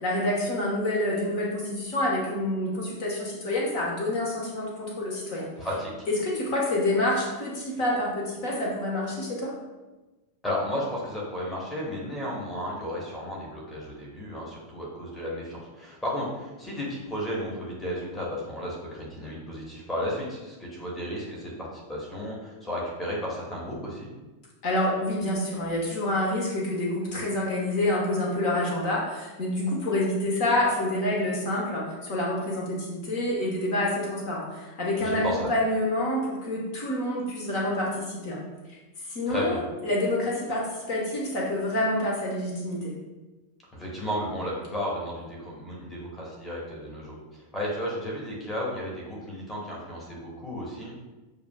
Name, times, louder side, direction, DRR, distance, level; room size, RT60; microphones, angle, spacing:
voice 1, 0.0-5.5 6.1-9.5 24.6-38.4 39.0-42.9, left 1 dB, 45° left, -4 dB, 1.0 m, -27 dB
voice 2, 5.6-5.9 10.4-24.1 35.0-35.5 39.3-39.6 43.7-47.2 47.5-51.1, equal, 10° left, -4 dB, 1.2 m, -33 dB
6.8 x 2.6 x 2.2 m, 1.1 s
figure-of-eight pair, 90°, 0 cm